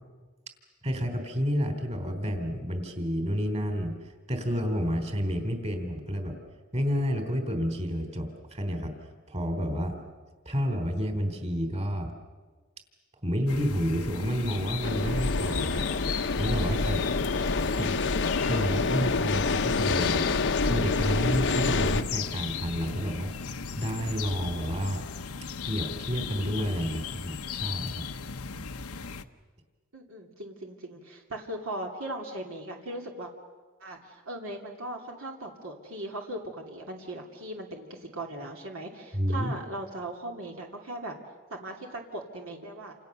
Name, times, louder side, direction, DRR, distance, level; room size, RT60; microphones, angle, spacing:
voice 1, 0.8-3.9 4.3-6.3 6.7-8.9 9.3-9.9 10.4-12.1 13.2-15.8 16.4-17.1 17.8-18.1 18.5-20.2 20.6-23.3 23.8-25.0 25.7-28.0 39.1-39.5, equal, 30° right, 6 dB, 3.5 m, -30 dB
sound 1, 13.5-29.2, left 5 dB, 85° left, 1.0 m, -37 dB
sound 2, 14.8-22.0, left 3 dB, 60° left, 0.9 m, -27 dB
voice 2, 29.9-33.3 33.8-41.1 41.5-42.9, right 1 dB, 65° right, 1 dB, 2.8 m, -39 dB
29.0 x 27.5 x 6.8 m, 1.4 s
head